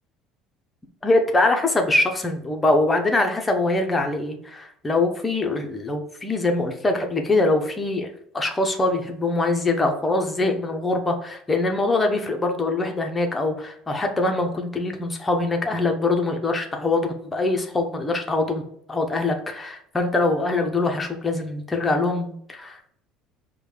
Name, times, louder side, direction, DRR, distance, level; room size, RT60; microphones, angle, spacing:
voice 1, 1.0-22.9, left 2 dB, 15° left, 3 dB, 0.6 m, -23 dB
5.1 x 2.2 x 4.8 m, 0.68 s
cardioid pair, 155°, 0 cm